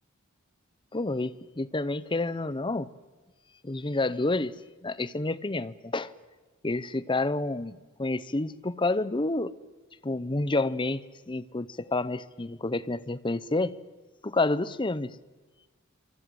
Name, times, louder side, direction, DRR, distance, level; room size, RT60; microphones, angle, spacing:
voice 1, 0.9-2.9 3.6-4.5 4.8-6.1 6.6-9.5 10.0-13.8 14.2-15.2, left 2 dB, 25° left, 17 dB, 0.8 m, -29 dB
27.5 x 25.0 x 7.8 m, 1.3 s
head